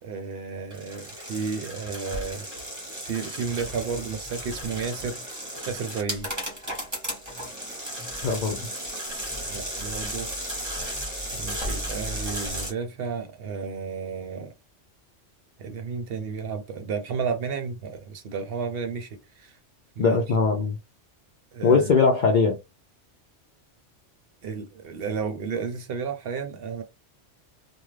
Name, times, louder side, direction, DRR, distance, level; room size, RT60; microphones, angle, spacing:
voice 1, 0.0-2.5 3.0-5.2 5.7-6.3 9.5-10.3 11.3-14.5 15.6-19.6 20.0-20.2 21.5-21.9 24.4-26.8, right 5 dB, 60° right, 0.7 m, -32 dB
sound 1, 0.7-12.7, equal, 15° right, 1.1 m, -34 dB
voice 2, 8.2-8.6 20.0-20.8 21.6-22.6, left 4 dB, 55° left, 0.5 m, -20 dB
2.4 x 2.3 x 3.1 m
omnidirectional pair, 1.2 m